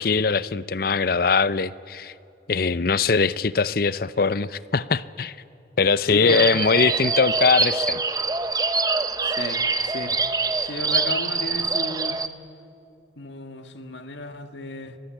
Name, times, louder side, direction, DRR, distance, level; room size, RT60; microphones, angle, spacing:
voice 1, 0.0-2.1 2.5-5.4 5.8-8.0, left 4 dB, 50° left, 17 dB, 0.6 m, -21 dB
voice 2, 6.0-6.5 9.2-10.2 10.6-12.2 13.2-15.0, left 2 dB, 75° left, 8 dB, 1.7 m, -33 dB
sound 1, 6.3-12.3, right 4 dB, 20° right, 0.8 m, -24 dB
29.5 x 21.5 x 9.1 m, 2.9 s
head